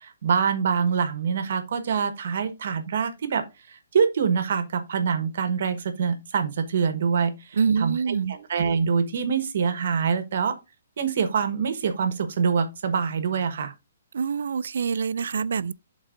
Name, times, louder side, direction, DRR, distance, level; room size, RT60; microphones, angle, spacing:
voice 1, 0.0-3.4 3.9-10.6 11.0-13.7, right 6 dB, 55° right, 1.2 m, -25 dB
voice 2, 7.5-8.4 14.1-15.7, right 6 dB, 70° right, 0.3 m, -25 dB
11.0 x 3.9 x 2.6 m
hypercardioid pair, 165°, 0 cm